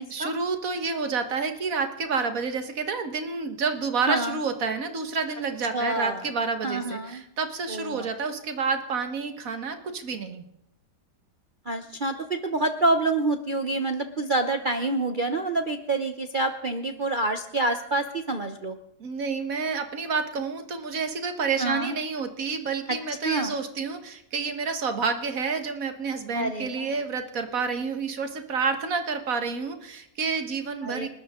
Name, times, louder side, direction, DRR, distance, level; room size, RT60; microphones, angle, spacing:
voice 1, 0.0-10.4 19.0-31.1, right 5 dB, 55° right, 7 dB, 1.8 m, -29 dB
voice 2, 5.7-6.2 6.6-7.2 7.7-8.1 11.7-18.8 21.6-21.9 23.2-23.6 26.3-26.9 30.8-31.1, right 2 dB, 40° right, 6 dB, 0.9 m, -27 dB
29.0 x 13.0 x 3.7 m, 0.77 s
omnidirectional pair, 1.8 m